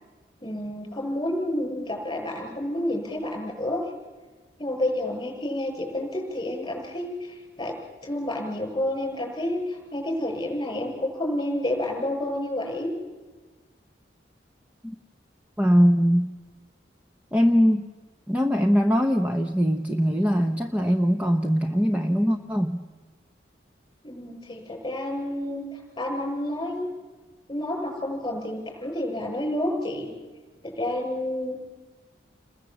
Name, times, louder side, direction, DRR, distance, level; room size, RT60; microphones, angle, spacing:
voice 1, 0.4-3.8 4.6-7.8 8.0-12.9 24.0-26.9 27.5-30.1 30.6-31.6, left 1 dB, 20° left, 1 dB, 6.6 m, -29 dB
voice 2, 15.6-16.3 17.3-17.9 18.3-22.8, equal, 10° right, 4 dB, 0.9 m, -21 dB
29.5 x 21.0 x 7.5 m, 1.4 s
head